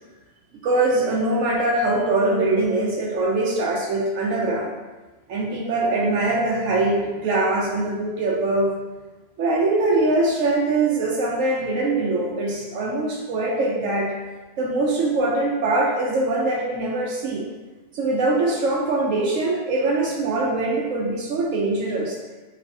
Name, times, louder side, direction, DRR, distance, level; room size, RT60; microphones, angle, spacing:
voice 1, 0.6-4.8 5.3-8.7 9.4-14.1 14.6-17.4 17.9-22.2, right 2 dB, 70° right, -3 dB, 0.9 m, -22 dB
3.4 x 3.1 x 2.6 m, 1.2 s
omnidirectional pair, 1.5 m